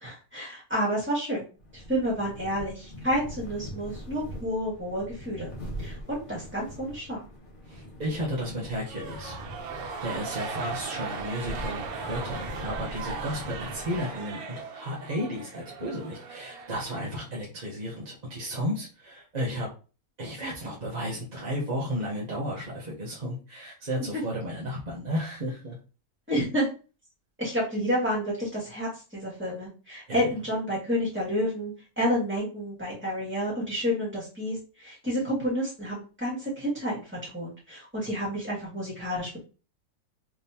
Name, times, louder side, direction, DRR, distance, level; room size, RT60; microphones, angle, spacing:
voice 1, 0.0-1.5 1.7-5.5 5.8-7.2 26.3-26.7 27.4-37.0 37.3-39.4, equal, 10° right, -6 dB, 1.9 m, -30 dB
sound 1, 1.6-14.3, equal, 40° left, 1.1 m, -42 dB
voice 2, 7.7-9.4 10.0-19.7 20.2-25.8 30.1-30.2, equal, 35° right, -5 dB, 0.9 m, -33 dB
sound 2, 8.8-17.3, right 5 dB, 75° right, 1.2 m, -38 dB
3.5 x 3.5 x 2.8 m, 0.36 s
omnidirectional pair, 1.6 m